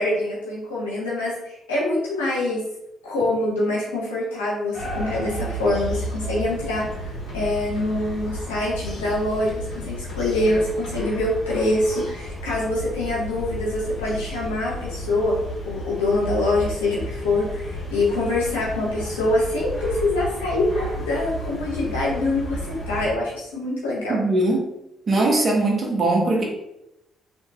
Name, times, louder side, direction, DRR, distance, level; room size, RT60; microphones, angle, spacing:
voice 1, 0.0-2.6 3.0-6.8 7.3-15.3 15.6-22.6 22.9-24.2, left 2 dB, 85° left, -6 dB, 1.0 m, -24 dB
sound 1, 4.7-23.1, equal, 55° left, 1.4 m, -32 dB
voice 2, 24.1-24.7 25.1-26.4, right 2 dB, 45° right, -1 dB, 0.9 m, -20 dB
3.0 x 2.9 x 2.3 m, 0.84 s
hypercardioid pair, 45°, 0 cm